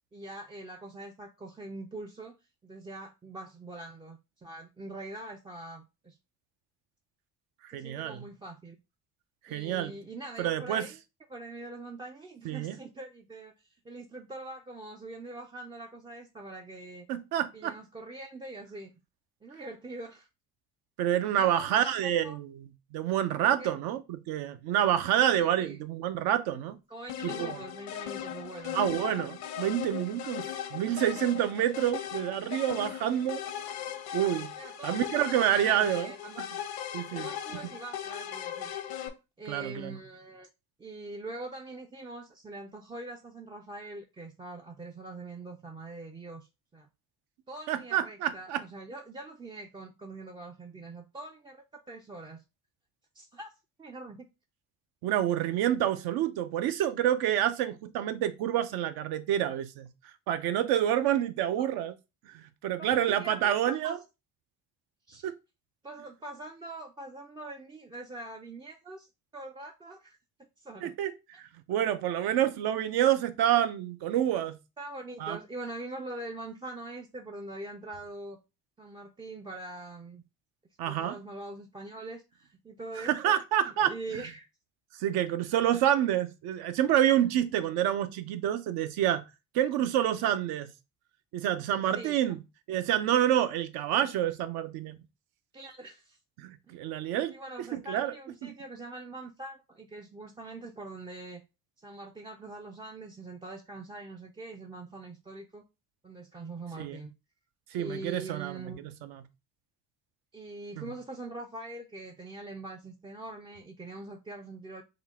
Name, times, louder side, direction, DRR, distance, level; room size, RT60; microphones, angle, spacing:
voice 1, 0.1-2.4 2.6-6.2 7.7-8.8 9.5-11.0 11.3-17.1 17.5-18.9 19.4-20.3 21.3-22.4 23.5-23.7 25.3-25.8 26.9-29.0 34.6-36.5 37.1-38.7 39.4-40.5 40.8-46.9 47.5-52.4 53.1-53.5 53.8-54.3 63.1-64.0 65.1-65.3 65.8-69.1 69.3-70.2 70.6-70.9 71.3-71.4 74.8-78.4 78.8-80.2 80.9-83.4 83.6-84.5 91.9-92.2 95.5-96.2 97.3-101.4 101.8-105.6 106.0-107.1 107.7-108.8 110.3-114.8, right 2 dB, 15° right, 0.3 m, -43 dB
voice 2, 7.6-8.2 9.5-9.9 10.4-10.9 12.4-12.8 17.1-17.7 21.0-26.8 27.2-27.6 28.7-33.4 34.1-34.5 34.8-36.1 36.9-37.3 39.5-40.0 47.7-48.6 55.0-59.9 60.3-61.9 62.3-64.0 65.2-65.3 70.8-71.1 71.4-74.6 75.2-75.4 80.8-81.2 83.0-84.2 85.0-89.2 89.5-90.7 91.3-92.4 92.7-95.0 96.4-97.3 97.7-98.1 98.4-98.5 106.8-107.0 107.7-108.6 110.8-110.9, right 11 dB, 75° right, 0.6 m, -28 dB
sound 1, 27.1-39.1, left 10 dB, 70° left, 0.8 m, -38 dB
3.8 x 2.3 x 3.5 m
supercardioid pair, 85°, 38 cm